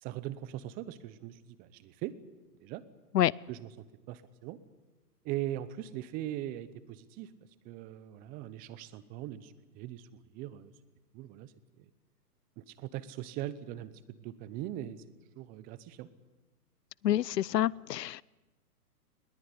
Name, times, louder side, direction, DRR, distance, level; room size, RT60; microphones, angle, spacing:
voice 1, 0.0-2.2 2.6-2.8 3.2-4.6 5.2-7.3 7.6-10.1 10.3-10.7 11.1-11.5 11.8-11.9 12.6-15.0 15.4-16.1, right 13 dB, 20° right, 17 dB, 0.8 m, -40 dB
voice 2, 17.0-18.2, left 12 dB, 80° left, 26 dB, 0.7 m, -27 dB
20.5 x 18.5 x 9.8 m, 1.2 s
hypercardioid pair, 135°, 48 cm